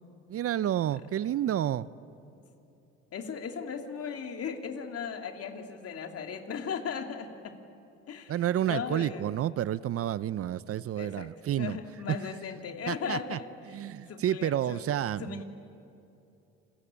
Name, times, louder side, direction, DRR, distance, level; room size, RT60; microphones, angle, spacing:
voice 1, 0.3-1.9 8.3-11.8 12.9-13.4 13.7-15.4, right 11 dB, 50° right, 18 dB, 0.7 m, -30 dB
voice 2, 3.1-7.6 8.1-9.4 11.0-11.3 11.6-13.8 14.1-15.4, left 6 dB, 50° left, 5 dB, 2.7 m, -37 dB
29.5 x 21.5 x 8.8 m, 2.9 s
supercardioid pair, 70°, 30 cm